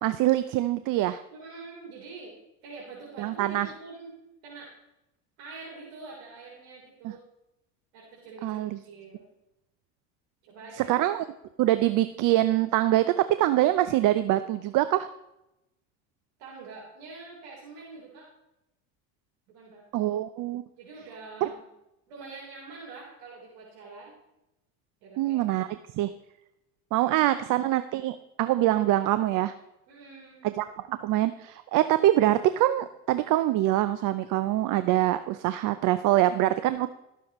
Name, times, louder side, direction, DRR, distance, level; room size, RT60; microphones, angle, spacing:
voice 1, 0.0-1.2 3.2-3.7 7.0-7.1 8.4-8.8 10.9-11.2 11.6-15.1 19.9-20.6 21.4-21.5 25.2-25.7 26.0-26.1 26.9-29.5 30.6-36.9, right 14 dB, 50° right, 12 dB, 0.6 m, -24 dB
voice 2, 1.3-2.3 2.6-4.1 4.4-4.7 5.4-7.2 7.9-9.3 10.4-10.9 16.4-18.3 19.5-20.1 20.8-21.6 22.1-24.2 25.0-25.7 27.0-27.4 29.9-30.5, right 4 dB, 70° right, -4 dB, 3.9 m, -45 dB
20.0 x 7.0 x 3.1 m, 0.90 s
supercardioid pair, 90°, 40 cm